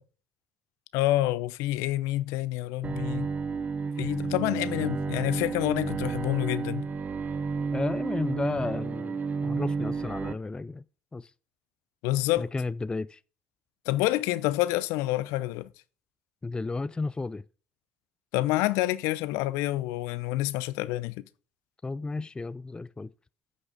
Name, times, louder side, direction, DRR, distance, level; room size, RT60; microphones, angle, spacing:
voice 1, 0.9-3.3 4.0-6.9 12.0-12.5 13.9-15.7 18.3-21.2, left 16 dB, 70° left, 0.6 m, -28 dB
Bowed string instrument, 2.8-10.3, right 5 dB, 30° right, 0.9 m, -31 dB
voice 2, 7.7-10.8 11.1-11.3 12.4-13.2 16.4-17.4 21.8-23.1, left 3 dB, 15° left, 0.4 m, -33 dB
9.5 x 6.2 x 5.0 m
hypercardioid pair, 65°, 5 cm